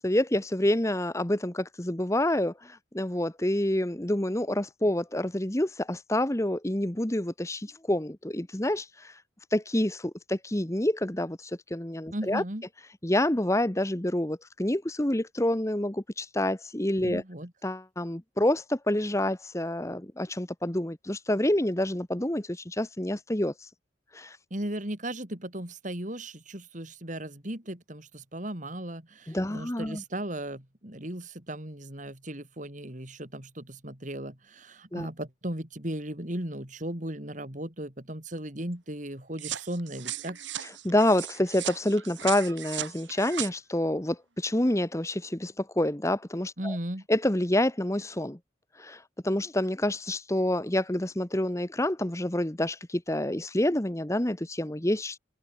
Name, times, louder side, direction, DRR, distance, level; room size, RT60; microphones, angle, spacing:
voice 1, 0.0-9.2 9.5-12.4 13.0-17.2 17.6-23.7 24.1-24.4 29.3-30.0 34.9-35.1 40.6-46.8 47.1-48.4 48.8-55.2, left 1 dB, 15° left, 1.1 m, -28 dB
voice 2, 12.1-12.6 17.0-17.5 24.5-40.4 46.6-47.0, right 1 dB, 40° right, 3.3 m, -36 dB
sound 1, 39.4-43.5, right 11 dB, 70° right, 2.0 m, -37 dB
head